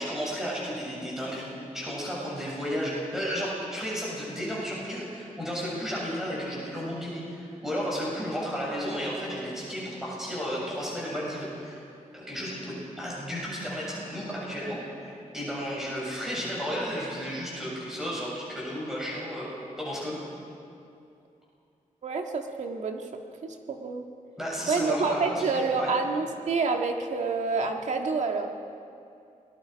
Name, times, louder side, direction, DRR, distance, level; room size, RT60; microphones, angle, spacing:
voice 1, 0.0-1.5 1.7-11.8 12.1-19.5 19.8-20.2 24.4-25.9, equal, 5° right, -6 dB, 7.3 m, -33 dB
voice 2, 22.0-23.1 23.4-24.1 24.7-28.5, right 4 dB, 60° right, 3 dB, 1.9 m, -28 dB
28.5 x 20.5 x 5.3 m, 2.5 s
wide cardioid pair, 180°, 13 cm